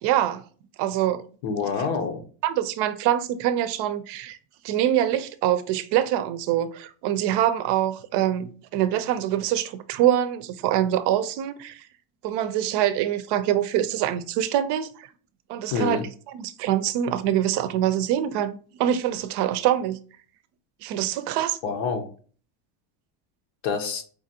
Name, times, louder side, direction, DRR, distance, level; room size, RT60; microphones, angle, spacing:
voice 1, 0.0-0.4 0.8-1.2 2.4-4.4 4.6-11.8 12.2-15.1 15.5-16.0 16.3-20.0 20.8-21.6, right 11 dB, 55° right, 0.5 m, -24 dB
voice 2, 1.4-2.2 15.7-16.1 21.6-22.1 23.6-24.0, left 5 dB, 80° left, 0.9 m, -27 dB
4.9 x 2.5 x 2.7 m
cardioid pair, 125°, 50 cm